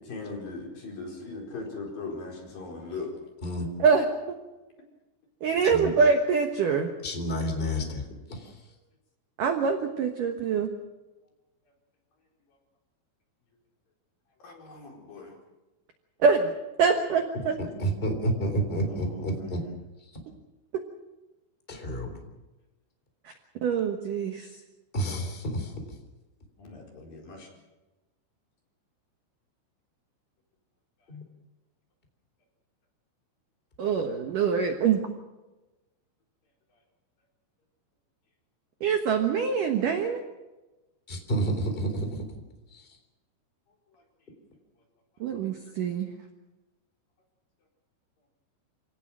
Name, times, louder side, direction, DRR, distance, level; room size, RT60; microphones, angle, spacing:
voice 1, 0.1-3.2 14.4-15.4 19.0-19.6 26.6-27.5 43.9-44.0, left 3 dB, 45° left, 0 dB, 5.9 m, -39 dB
voice 2, 5.4-6.9 9.4-10.7 16.2-16.5 16.8-17.5 23.6-24.5 33.8-35.0 38.8-40.2 45.2-46.1, right 5 dB, 75° right, 5 dB, 1.9 m, -24 dB
voice 3, 7.0-8.0 8.3-8.6 17.6-19.6 21.7-22.2 24.9-25.7 31.1-31.2 41.1-42.3 42.7-42.9, right 1 dB, 15° left, 5 dB, 3.0 m, -30 dB
27.5 x 18.0 x 6.3 m, 1.1 s
omnidirectional pair, 6.0 m